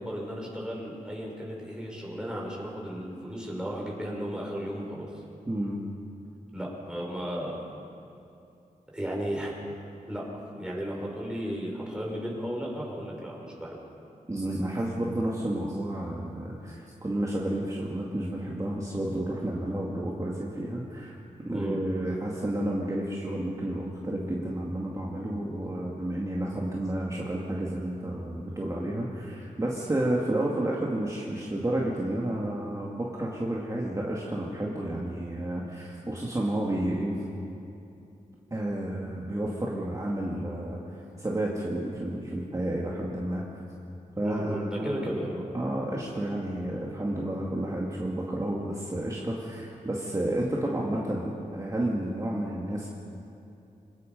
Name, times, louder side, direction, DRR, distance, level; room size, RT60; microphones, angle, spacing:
voice 1, 0.0-5.1 6.5-7.6 8.9-9.5 10.1-10.2 10.6-13.8 21.5-21.8 44.2-45.4, equal, 5° right, -3 dB, 5.5 m, -34 dB
voice 2, 5.5-5.8 14.3-21.1 21.4-37.2 38.5-43.4 44.2-45.0 45.5-52.9, right 1 dB, 25° right, -4 dB, 2.4 m, -31 dB
26.5 x 18.5 x 5.5 m, 2.8 s
wide cardioid pair, 95°, 14 cm